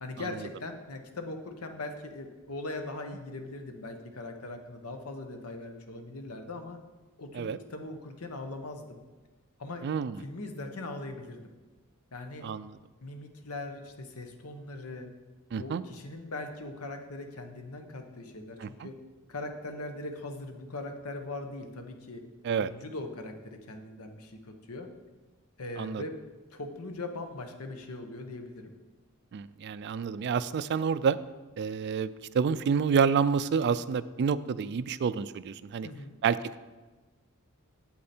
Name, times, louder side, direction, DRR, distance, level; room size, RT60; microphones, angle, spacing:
voice 1, 0.0-6.8 7.2-9.0 9.6-9.9 10.2-11.5 12.1-12.5 13.0-15.1 15.5-19.0 19.3-22.2 22.6-24.9 25.6-26.2 26.5-28.7 35.8-36.1, left 2 dB, 85° left, 6 dB, 1.0 m, -40 dB
voice 2, 9.8-10.2 12.4-12.8 15.5-15.8 18.6-18.9 22.4-22.7 25.8-26.0 29.3-31.2 31.6-35.9 36.2-36.6, right 6 dB, 50° right, 15 dB, 0.3 m, -28 dB
8.4 x 8.0 x 4.3 m, 1.2 s
head